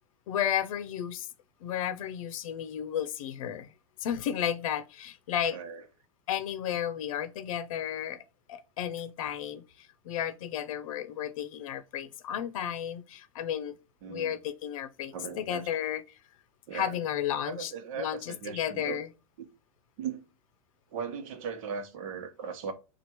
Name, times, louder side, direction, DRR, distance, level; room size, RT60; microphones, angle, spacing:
voice 1, 0.3-1.3 1.6-3.7 4.0-5.6 6.3-8.2 8.5-13.8 14.1-16.2 16.7-19.1, left 10 dB, 70° left, 0.6 m, -33 dB
voice 2, 14.0-14.4 15.1-15.7 16.7-17.0 17.4-19.0 19.4-19.5 20.0-20.2 20.9-22.7, right 6 dB, 65° right, 1.1 m, -38 dB
4.4 x 2.5 x 4.4 m
hypercardioid pair, 115°, 18 cm